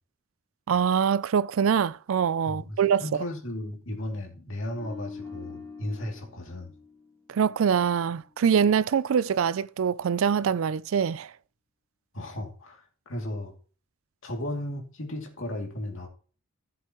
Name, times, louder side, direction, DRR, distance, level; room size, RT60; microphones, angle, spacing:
voice 1, 0.7-3.0 7.3-11.3, right 7 dB, 70° right, 0.4 m, -24 dB
voice 2, 2.4-6.7 12.1-13.5 14.2-16.1, left 1 dB, 65° left, 2.7 m, -35 dB
sound 1, 4.7-8.0 8.3-8.6, left 4 dB, 10° left, 2.4 m, -45 dB
15.0 x 7.6 x 3.0 m
head